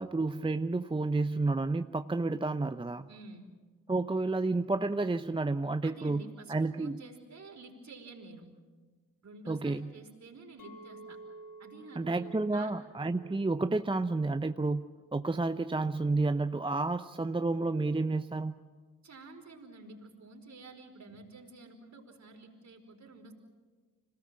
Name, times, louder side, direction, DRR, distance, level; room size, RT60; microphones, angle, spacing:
voice 1, 0.0-3.1 3.9-6.2 6.5-7.0 9.5-9.9 12.0-18.6, right 3 dB, 15° right, 10 dB, 0.8 m, -30 dB
voice 2, 3.1-3.4 5.8-8.5 9.2-11.2 11.6-12.7 19.0-23.3, right 3 dB, 50° right, 2 dB, 4.9 m, -50 dB
Chink clink, 10.6-14.9 15.3-15.7, right 3 dB, 65° left, 2.2 m, -52 dB
26.0 x 19.0 x 7.6 m, 1.4 s
hypercardioid pair, 40°, 35 cm